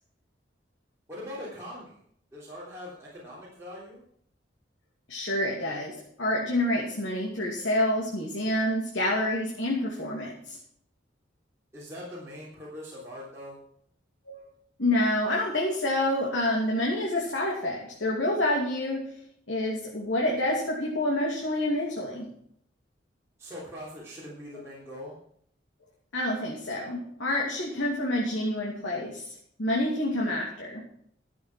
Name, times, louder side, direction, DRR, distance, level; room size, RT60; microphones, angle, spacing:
voice 1, 1.1-2.0 2.3-4.0 11.7-13.6 23.4-25.1, left 1 dB, 15° right, -8 dB, 3.3 m, -42 dB
voice 2, 5.1-10.6 14.3-14.4 14.8-19.1 19.5-22.2 26.1-29.2 29.6-30.8, left 1 dB, 85° left, -3 dB, 2.6 m, -28 dB
12.5 x 7.9 x 6.0 m, 0.66 s
head